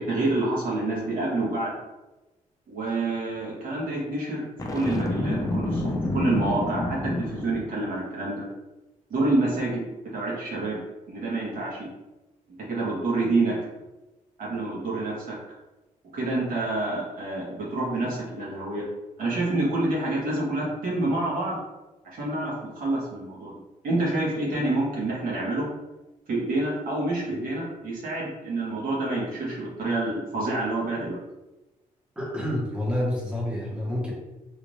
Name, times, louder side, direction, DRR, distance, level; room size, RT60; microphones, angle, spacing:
voice 1, 0.0-1.7 2.7-4.4 4.7-8.5 9.1-9.8 10.1-10.8 11.1-11.9 12.7-13.5 14.4-15.4 16.1-18.8 19.2-21.6 22.1-23.6 23.8-25.7 26.3-31.2, right 2 dB, 70° right, -5 dB, 1.3 m, -27 dB
Boom, 4.6-7.8, left 2 dB, 25° left, 0.5 m, -28 dB
voice 2, 32.2-34.1, left 1 dB, 5° right, -4 dB, 1.0 m, -28 dB
3.5 x 2.4 x 3.1 m, 1.1 s
cardioid pair, 105°, 15 cm